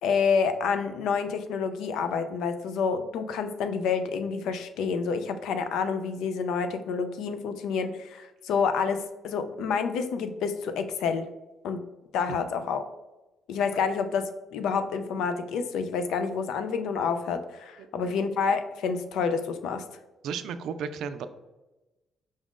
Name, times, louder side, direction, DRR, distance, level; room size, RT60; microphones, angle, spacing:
voice 1, 0.0-11.3 11.6-11.8 12.1-12.9 13.5-19.8, left 5 dB, 85° left, 9 dB, 0.4 m, -28 dB
voice 2, 20.2-21.3, right 6 dB, 80° right, 11 dB, 0.3 m, -34 dB
5.1 x 2.4 x 3.6 m, 1.1 s
cardioid pair, 90°, 0 cm